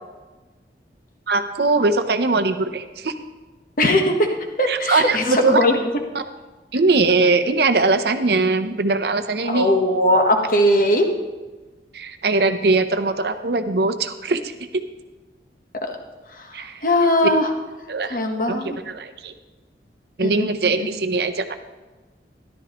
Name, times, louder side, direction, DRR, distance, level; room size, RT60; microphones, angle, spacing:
voice 1, 1.3-3.1 4.7-5.6 6.7-9.7 11.9-14.4 16.5-16.8 17.9-18.2 18.5-19.3 20.2-21.6, right 3 dB, 65° right, 8 dB, 0.7 m, -21 dB
voice 2, 3.8-5.8 9.5-11.1 15.8-16.0 16.4-17.5 18.1-18.8 20.2-20.5 20.8-20.9, left 1 dB, 50° left, 3 dB, 1.2 m, -19 dB
13.5 x 11.5 x 3.0 m, 1.2 s
head